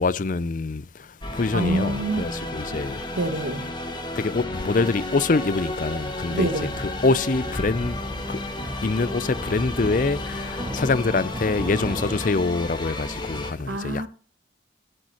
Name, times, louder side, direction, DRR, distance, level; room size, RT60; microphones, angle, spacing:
voice 1, 0.0-3.0 4.2-6.5 6.8-8.0 8.3-8.4 8.8-14.1, left 3 dB, 45° left, 0.5 m, -25 dB
sound 1, 1.2-13.5, left 2 dB, 25° left, 1.8 m, -33 dB
voice 2, 1.5-2.3 3.2-3.7 6.3-6.7 13.7-14.1, right 2 dB, 85° right, 1.8 m, -26 dB
sound 2, 6.7-12.3, equal, 20° right, 1.9 m, -34 dB
12.0 x 11.0 x 2.9 m
head